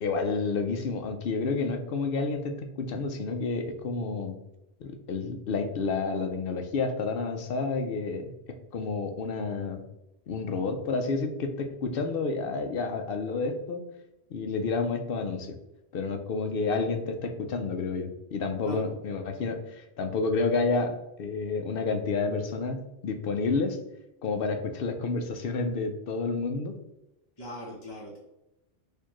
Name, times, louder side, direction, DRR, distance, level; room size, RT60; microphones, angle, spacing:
voice 1, 0.0-4.4 4.8-8.3 8.7-9.8 10.3-13.8 14.3-15.6 15.9-23.8 24.2-26.7, left 4 dB, 65° left, 5 dB, 0.7 m, -30 dB
voice 2, 27.4-28.2, left 1 dB, 25° left, -6 dB, 0.8 m, -39 dB
4.3 x 2.6 x 3.0 m, 0.90 s
omnidirectional pair, 1.1 m